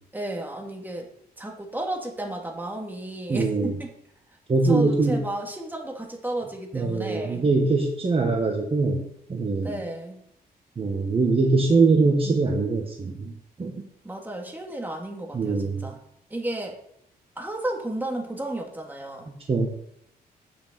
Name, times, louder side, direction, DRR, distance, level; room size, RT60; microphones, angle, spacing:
voice 1, 0.1-1.1 1.4-3.9 4.6-7.4 9.6-10.2 14.0-16.0 16.3-16.8 17.4-19.3, right 1 dB, 10° right, 1 dB, 2.5 m, -33 dB
voice 2, 3.3-3.8 4.5-5.2 6.7-9.0 9.3-9.7 10.8-13.3 13.6-13.7 15.3-15.9 19.5-19.7, right 3 dB, 35° right, 1 dB, 1.8 m, -22 dB
9.0 x 6.9 x 7.0 m, 0.73 s
cardioid pair, 95°, 17 cm